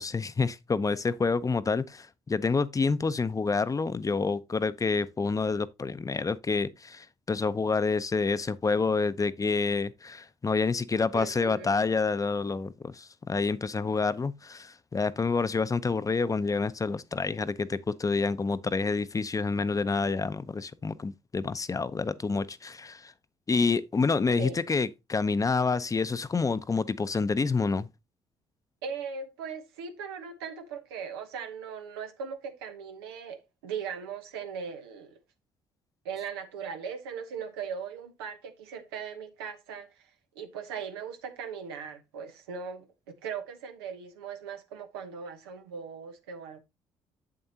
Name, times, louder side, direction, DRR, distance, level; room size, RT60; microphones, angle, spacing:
voice 1, 0.0-23.1 23.5-27.9, left 4 dB, 25° left, 0.7 m, -28 dB
voice 2, 11.1-11.7 24.4-24.6 28.8-35.2 36.0-39.9 40.3-46.6, right 6 dB, 90° right, 1.0 m, -39 dB
7.7 x 7.4 x 2.8 m
hypercardioid pair, 55°, 13 cm